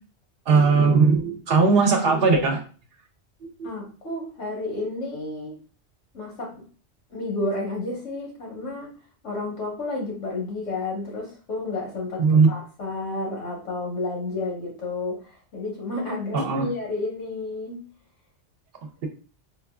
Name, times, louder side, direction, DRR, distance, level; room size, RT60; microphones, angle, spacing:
voice 1, 0.5-2.6 12.2-12.5 16.3-16.7, right 4 dB, 60° right, 4 dB, 0.8 m, -18 dB
voice 2, 3.6-5.6 6.1-6.7 7.1-8.9 9.2-17.9, left 2 dB, 90° left, -3 dB, 1.7 m, -31 dB
4.6 x 2.2 x 2.3 m, 0.38 s
omnidirectional pair, 1.2 m